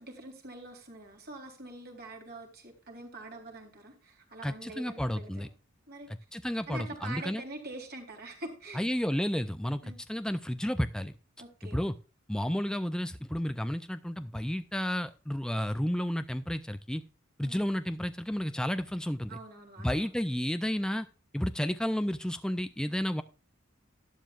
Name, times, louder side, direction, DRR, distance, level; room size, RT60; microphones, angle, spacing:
voice 1, 0.0-5.5 5.9-6.1 6.7-8.8 9.8-10.0 11.4-11.8 17.4-17.6 19.3-20.1, right 2 dB, 50° right, 2 dB, 3.6 m, -45 dB
voice 2, 4.4-5.5 6.3-7.4 8.7-11.1 11.6-12.0 12.3-17.0 17.4-19.4 19.8-21.1 21.3-23.2, equal, 5° left, 9 dB, 0.4 m, -31 dB
12.0 x 11.5 x 2.4 m, 0.34 s
head